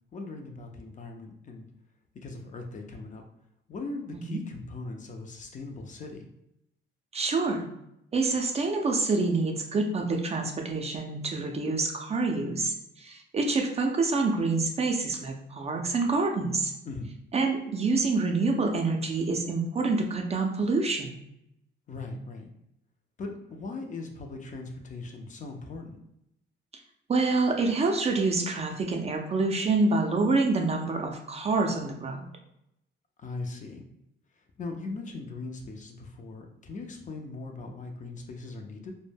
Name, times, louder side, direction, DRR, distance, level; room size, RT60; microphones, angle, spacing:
voice 1, 0.1-1.7 2.1-3.2 3.7-6.3 16.8-17.1 21.9-22.5 23.2-26.0 33.2-33.8 34.6-38.9, left 3 dB, 40° left, 3 dB, 0.4 m, -39 dB
voice 2, 7.1-7.6 8.1-16.7 17.3-21.1 27.1-32.3, right 3 dB, 30° right, 2 dB, 0.4 m, -27 dB
2.1 x 2.1 x 3.2 m, 0.81 s
cardioid pair, 90°, 20 cm